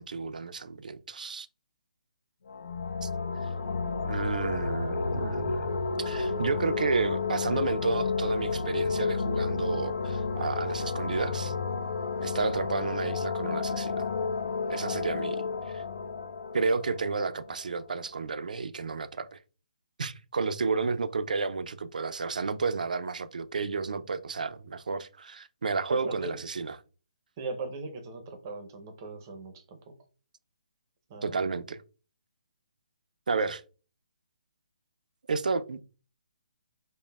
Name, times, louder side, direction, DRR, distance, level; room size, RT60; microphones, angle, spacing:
voice 1, 0.0-1.5 3.0-3.1 4.0-5.7 6.0-11.5 12.2-14.1 14.7-15.8 16.5-19.4 20.0-26.8 31.2-31.8 33.3-33.6 35.3-35.8, right 4 dB, 80° right, 0.4 m, -31 dB
sound 1, 2.5-18.0, left 4 dB, 75° left, 0.5 m, -31 dB
voice 2, 25.9-26.4 27.4-29.9 31.1-31.5, right 3 dB, 25° right, 0.6 m, -39 dB
5.2 x 2.1 x 2.3 m
hypercardioid pair, 165°, 4 cm